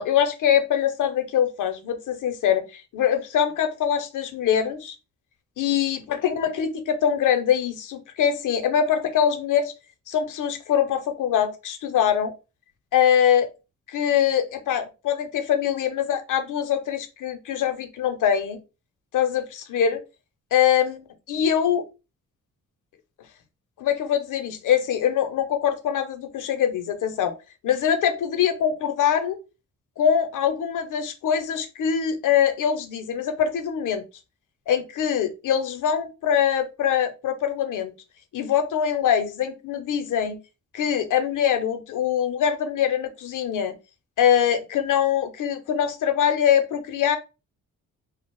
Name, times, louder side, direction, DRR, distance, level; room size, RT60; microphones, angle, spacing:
voice 1, 0.0-5.0 5.6-9.7 10.1-12.3 12.9-13.5 13.9-18.6 19.1-20.0 20.5-21.9 23.8-27.3 27.6-29.4 30.0-34.0 34.7-37.9 38.3-40.4 40.7-43.7 44.2-47.2, left 9 dB, 75° left, 8 dB, 0.6 m, -23 dB
2.3 x 2.0 x 2.9 m, 0.29 s
cardioid pair, 115°, 32 cm